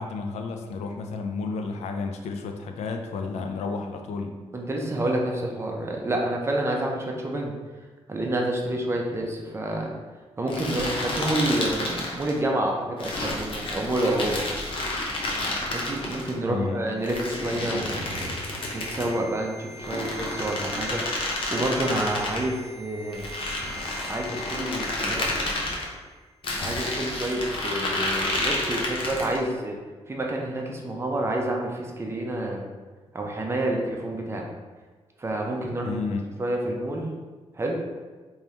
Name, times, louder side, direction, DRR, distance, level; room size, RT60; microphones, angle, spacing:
voice 1, 0.0-4.4 16.5-16.8 35.8-36.3, left 4 dB, 85° left, 4 dB, 0.4 m, -31 dB
voice 2, 4.5-7.6 8.1-9.9 10.4-14.4 15.7-18.3 18.7-21.0 21.5-23.3 24.0-25.3 26.6-29.8 30.1-32.6 33.1-34.5 35.2-36.0 36.4-37.1 37.5-37.8, right 1 dB, 25° right, 0 dB, 0.6 m, -28 dB
sound 1, 10.5-12.4 13.0-16.3 17.0-19.2 19.8-22.4 23.1-25.8 26.4-29.4, left 1 dB, 55° left, 0.8 m, -30 dB
sound 2, 16.6-25.9 26.1-26.3, left 1 dB, 70° right, 0.5 m, -45 dB
3.5 x 3.1 x 2.9 m, 1.3 s
cardioid pair, 110°, 11 cm